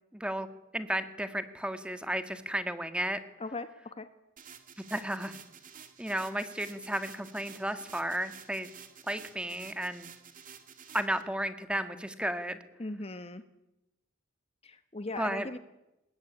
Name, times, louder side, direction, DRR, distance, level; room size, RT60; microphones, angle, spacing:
voice 1, 0.1-0.5 0.7-3.2 4.9-5.3 6.0-8.7 9.1-10.1 10.9-12.6 15.2-15.5, right 1 dB, 5° right, 9 dB, 1.8 m, -33 dB
voice 2, 3.4-4.1 12.8-13.4 14.6-15.6, left 2 dB, 30° left, 10 dB, 1.2 m, -39 dB
sound 1, 4.4-11.2, right 7 dB, 40° right, 2.4 m, -51 dB
25.0 x 20.5 x 9.9 m, 0.93 s
head